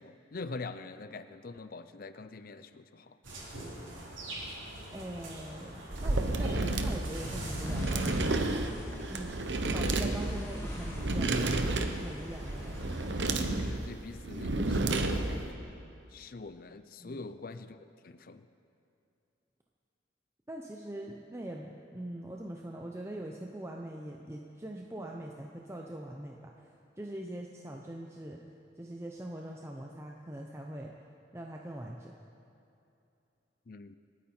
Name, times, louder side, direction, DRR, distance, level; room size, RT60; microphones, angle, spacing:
voice 1, 0.0-3.2 13.6-15.7 16.1-17.8 18.0-18.4 33.7-34.0, left 3 dB, 50° left, 11 dB, 0.5 m, -44 dB
sound 1, 3.2-8.6, right 1 dB, 85° right, 4.0 m, -43 dB
voice 2, 4.9-8.5 9.1-9.4 9.7-12.8 17.0-17.3 20.5-26.7 27.0-28.4 28.8-30.9 31.3-32.2, right 1 dB, 15° right, 0 dB, 0.7 m, -42 dB
sound 2, 5.9-15.5, right 2 dB, 70° right, 0.9 m, -31 dB
sound 3, 7.6-13.4, equal, 15° left, 2.0 m, -42 dB
27.0 x 9.3 x 4.4 m, 2.7 s
head